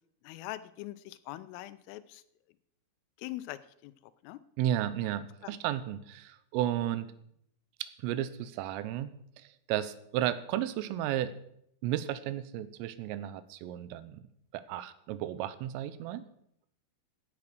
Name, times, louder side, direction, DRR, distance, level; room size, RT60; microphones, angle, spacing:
voice 1, 0.3-2.2 3.2-3.9 4.2-4.4 5.4-5.6, left 16 dB, 90° left, 14 dB, 3.4 m, -42 dB
voice 2, 4.6-7.1 7.8-11.3 11.8-14.2 14.5-16.3, right 12 dB, 90° right, 14 dB, 3.5 m, -33 dB
16.0 x 8.6 x 6.2 m, 0.72 s
omnidirectional pair, 5.7 m